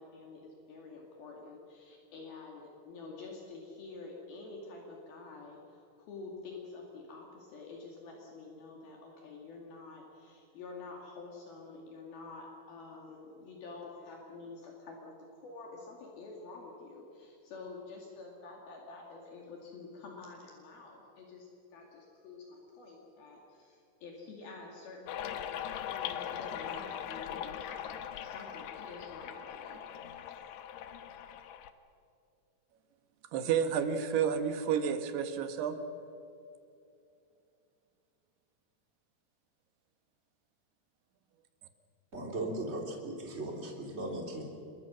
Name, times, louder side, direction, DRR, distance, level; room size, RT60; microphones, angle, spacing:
voice 1, 0.0-30.1, left 3 dB, 65° left, -1 dB, 4.2 m, -48 dB
sound 1, 25.1-31.7, left 10 dB, 80° left, 3.0 m, -40 dB
voice 2, 33.3-35.8, right 7 dB, 80° right, 8 dB, 3.4 m, -30 dB
voice 3, 42.1-44.4, right 1 dB, 15° right, 0 dB, 3.1 m, -38 dB
26.5 x 22.0 x 6.3 m, 2.6 s
omnidirectional pair, 4.7 m